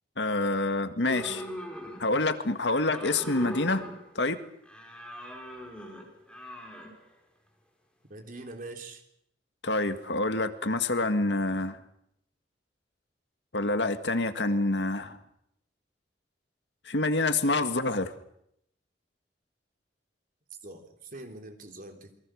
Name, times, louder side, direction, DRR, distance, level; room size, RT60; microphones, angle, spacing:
voice 1, 0.2-1.4 2.0-3.8 4.2-4.4 9.6-11.8 13.5-15.2 16.9-18.1, left 2 dB, 75° left, 9 dB, 1.9 m, -27 dB
sound 1, 1.1-2.3 2.6-4.2 4.6-7.0, equal, 5° left, 4.6 m, -41 dB
voice 2, 8.1-9.0 20.6-22.1, right 2 dB, 50° right, 4 dB, 3.7 m, -43 dB
28.5 x 23.0 x 6.5 m, 0.76 s
head